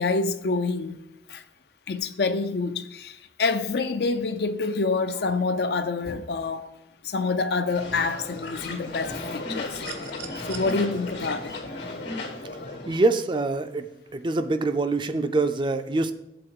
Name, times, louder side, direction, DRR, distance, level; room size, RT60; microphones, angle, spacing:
voice 1, 0.0-1.4 1.9-6.7 7.0-9.8 10.4-11.6, left 3 dB, 60° left, 0.5 m, -27 dB
sound 1, 7.7-13.0, left 2 dB, 80° left, 1.9 m, -35 dB
sound 2, 9.7-10.7 12.2-12.4, right 8 dB, 70° right, 1.1 m, -41 dB
voice 2, 12.9-13.9 14.1-16.1, right 2 dB, 25° right, 0.4 m, -24 dB
7.8 x 3.8 x 6.5 m
head